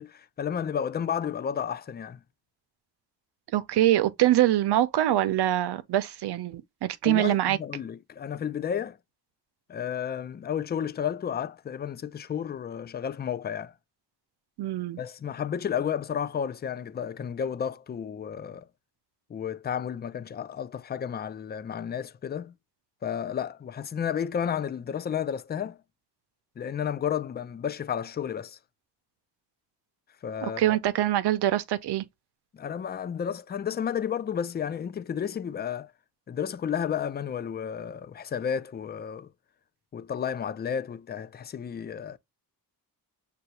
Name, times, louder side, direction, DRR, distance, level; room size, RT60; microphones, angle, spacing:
voice 1, 0.0-2.2 7.0-9.0 9.7-13.7 15.0-18.7 19.3-22.5 23.0-25.8 26.6-28.6 30.2-30.8 32.5-35.9 36.3-39.3 39.9-42.2, left 8 dB, 25° left, 0.4 m, -32 dB
voice 2, 3.5-7.6 14.6-15.0 30.4-32.1, right 13 dB, 70° right, 0.6 m, -24 dB
6.6 x 2.3 x 2.9 m
cardioid pair, 95°, 41 cm